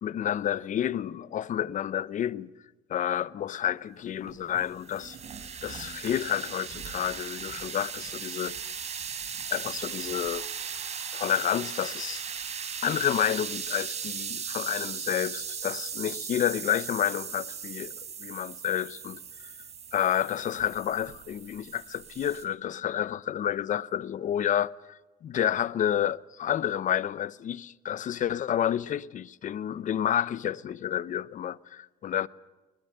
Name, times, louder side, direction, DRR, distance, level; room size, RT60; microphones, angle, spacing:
voice 1, 0.0-2.5 2.9-5.2 5.6-8.6 9.5-10.4 11.1-12.2 12.8-17.9 18.2-19.5 19.9-32.3, left 10 dB, 50° left, 0.8 m, -30 dB
sound 1, 4.2-22.4, right 7 dB, 40° right, 3.6 m, -38 dB
21.5 x 20.5 x 9.3 m
cardioid pair, 110°, 17 cm